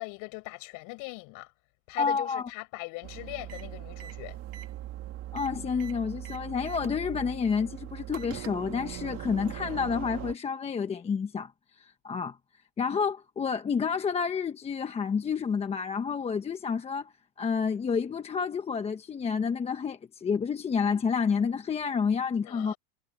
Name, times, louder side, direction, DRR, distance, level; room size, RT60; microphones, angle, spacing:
voice 1, 0.0-1.5 1.9-4.4 22.4-22.8, left 26 dB, 50° left, 7.7 m, -40 dB
voice 2, 2.0-2.5 5.3-12.4 12.8-17.1 17.4-22.7, left 6 dB, 15° left, 1.0 m, -29 dB
sound 1, 3.0-10.4, right 13 dB, 35° right, 2.5 m, -40 dB
supercardioid pair, 145°, 40 cm